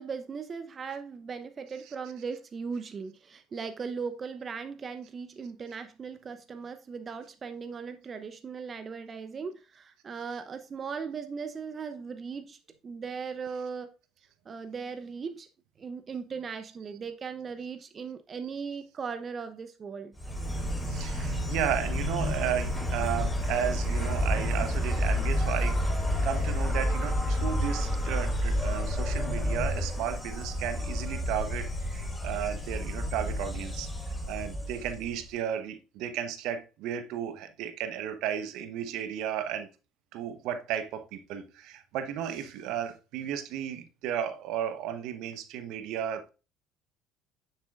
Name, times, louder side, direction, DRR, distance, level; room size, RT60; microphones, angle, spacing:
voice 1, 0.0-12.6 12.8-13.9 14.5-15.5 15.8-20.1, right 5 dB, 35° right, 0.8 m, -38 dB
Insect, 20.2-35.3, equal, 10° left, 4.4 m, -30 dB
voice 2, 20.9-39.7 40.1-46.3, right 9 dB, 65° right, 1.1 m, -34 dB
9.3 x 7.4 x 2.5 m
hypercardioid pair, 60°, 0 cm